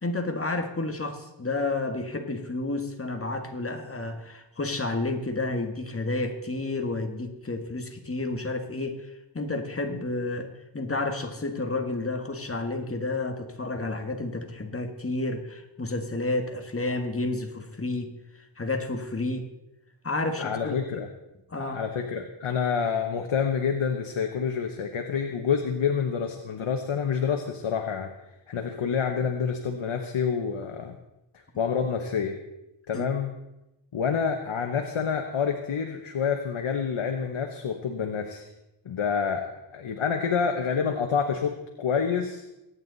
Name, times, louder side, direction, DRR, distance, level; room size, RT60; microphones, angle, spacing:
voice 1, 0.0-18.1 18.6-19.5 20.0-21.0 21.5-21.8 32.9-33.1, left 2 dB, 30° left, 5 dB, 1.7 m, -31 dB
voice 2, 20.4-21.1 21.6-28.1 28.5-31.0 31.6-32.4 32.9-33.3 33.9-38.4 38.8-42.4, left 6 dB, 85° left, 4 dB, 1.3 m, -28 dB
23.0 x 9.4 x 4.1 m, 0.93 s
wide cardioid pair, 90°, 48 cm